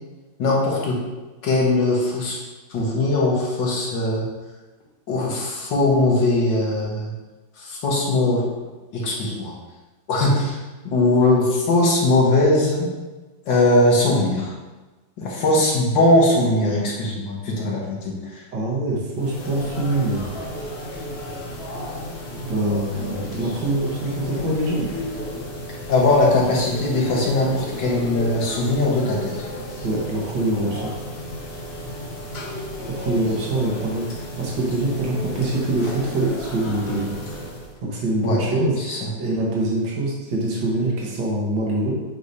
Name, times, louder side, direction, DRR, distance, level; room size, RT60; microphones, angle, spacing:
voice 1, 0.4-1.0 1.4-2.4 2.7-4.3 5.1-7.1 7.6-8.4 8.9-9.5 10.1-10.6 10.9-12.9 13.5-14.5 15.2-18.4 25.9-29.3 38.2-38.4 38.8-39.0, left 2 dB, 75° left, -3 dB, 2.0 m, -20 dB
voice 2, 18.5-20.3 22.4-24.8 29.8-30.9 32.9-37.1 37.8-38.8 39.2-41.9, right 2 dB, 70° right, -3 dB, 1.9 m, -24 dB
sound 1, 19.1-37.8, left 1 dB, 40° left, 1.0 m, -33 dB
8.3 x 4.9 x 2.8 m, 1.2 s
omnidirectional pair, 2.0 m